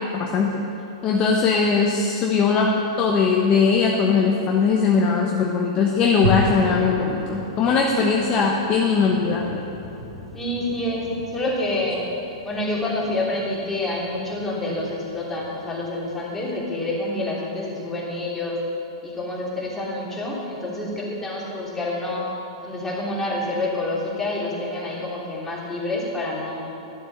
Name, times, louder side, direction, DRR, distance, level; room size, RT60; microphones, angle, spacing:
voice 1, 0.1-0.6 1.0-2.7 3.0-9.6, left 5 dB, 30° left, 0 dB, 1.0 m, -20 dB
sound 1, 6.2-16.5, equal, 85° right, 2.6 m, -34 dB
voice 2, 10.3-12.0 12.4-18.6 19.0-22.3 22.6-26.6, left 1 dB, 10° left, -5 dB, 3.1 m, -27 dB
11.5 x 7.6 x 6.6 m, 3.0 s
hypercardioid pair, 110°, 3 cm